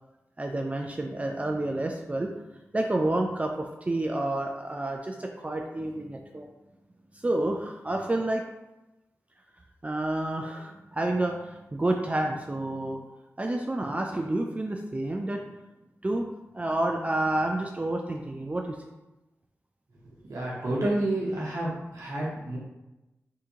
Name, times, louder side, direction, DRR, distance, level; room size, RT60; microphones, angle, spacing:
voice 1, 0.4-2.3 2.7-6.5 7.1-8.4 9.8-13.0 13.4-15.7 16.0-16.3 16.5-18.8, right 1 dB, 25° right, 2 dB, 0.3 m, -29 dB
voice 2, 20.3-22.6, right 1 dB, 90° right, -5 dB, 0.8 m, -29 dB
3.6 x 2.6 x 2.8 m, 1.0 s
cardioid pair, 55°, 5 cm